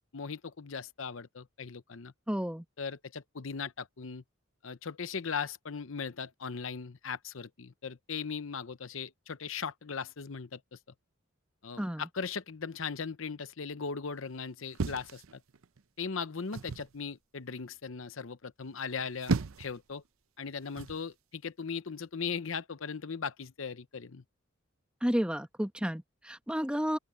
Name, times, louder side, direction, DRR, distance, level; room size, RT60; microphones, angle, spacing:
voice 1, 0.1-2.1 2.8-4.2 4.6-10.8 11.6-15.4 16.0-20.0 20.4-24.2, left 5 dB, 70° left, 0.8 m, -38 dB
voice 2, 2.3-2.6 11.8-12.1 25.0-27.0, equal, 5° right, 1.1 m, -31 dB
sound 1, 14.8-15.8 16.5-16.9 18.9-19.8 20.8-21.0, right 4 dB, 80° right, 0.7 m, -34 dB
open air
head